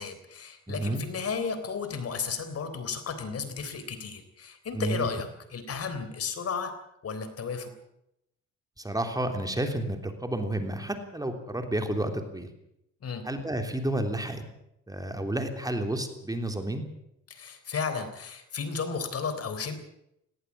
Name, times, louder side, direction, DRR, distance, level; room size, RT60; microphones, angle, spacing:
voice 1, 0.0-6.7 7.0-7.7 13.0-13.2 17.3-19.7, left 5 dB, 50° left, 10 dB, 3.7 m, -33 dB
voice 2, 0.7-1.0 4.7-5.1 8.8-12.5 13.2-14.4 14.9-16.8, right 1 dB, 10° right, 6 dB, 3.3 m, -31 dB
18.5 x 18.0 x 8.6 m, 0.81 s
cardioid pair, 90°, 30 cm